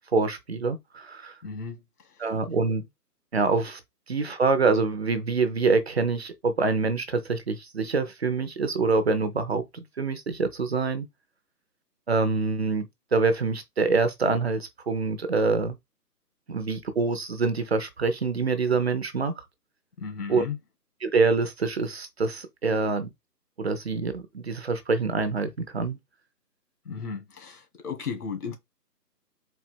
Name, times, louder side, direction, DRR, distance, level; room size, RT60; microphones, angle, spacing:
voice 1, 0.1-1.4 2.2-2.8 3.3-3.8 4.1-11.1 12.1-12.9 13.1-15.8 16.5-19.4 20.3-20.5 21.0-23.1 23.6-26.0, right 4 dB, 40° right, 0.6 m, -25 dB
voice 2, 1.4-1.8 20.0-20.6 26.9-28.5, left 6 dB, 65° left, 1.8 m, -34 dB
4.4 x 2.4 x 4.3 m
figure-of-eight pair, 155°, 48 cm